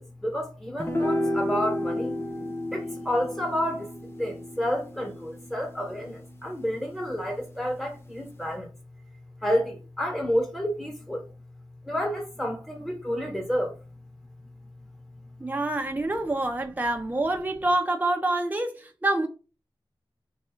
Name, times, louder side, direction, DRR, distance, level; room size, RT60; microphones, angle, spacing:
voice 1, 0.0-2.2 2.7-3.9 4.1-8.7 9.4-11.3 11.8-13.7, equal, ahead, 1.5 m, -30 dB
sound 1, 0.8-7.3, left 1 dB, 30° left, 0.7 m, -32 dB
voice 2, 15.4-19.3, right 2 dB, 20° right, 0.8 m, -26 dB
4.0 x 2.7 x 3.7 m
wide cardioid pair, 100°, 9 cm